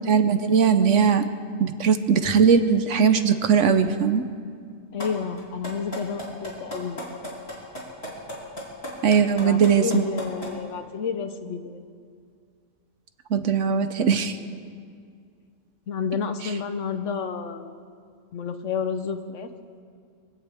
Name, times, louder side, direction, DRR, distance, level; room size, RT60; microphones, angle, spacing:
voice 1, 0.1-1.2 1.6-4.2 9.0-10.0 13.3-14.4 16.4-16.5, right 6 dB, 65° right, 9 dB, 1.1 m, -20 dB
voice 2, 4.9-7.0 9.4-11.8 15.9-17.8 18.3-19.5, left 6 dB, 65° left, 8 dB, 1.1 m, -30 dB
sound 1, 5.0-5.1 5.4-10.5, left 1 dB, 45° left, 3.9 m, -34 dB
24.5 x 16.5 x 3.5 m, 2.2 s
omnidirectional pair, 1.5 m